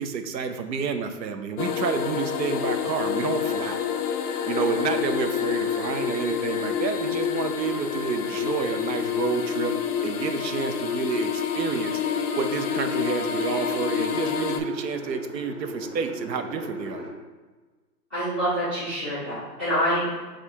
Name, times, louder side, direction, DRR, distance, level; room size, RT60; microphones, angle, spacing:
voice 1, 0.0-3.8 4.5-9.7 10.0-11.9 12.4-17.0, right 6 dB, 85° right, 7 dB, 0.6 m, -29 dB
sound 1, 1.6-14.6, left 8 dB, 70° left, 0.5 m, -28 dB
sound 2, 4.4-17.1, right 1 dB, 25° right, 1.0 m, -39 dB
voice 2, 18.1-20.2, equal, 5° right, -14 dB, 0.4 m, -26 dB
3.4 x 2.5 x 4.3 m, 1.3 s
hypercardioid pair, 145°, 49 cm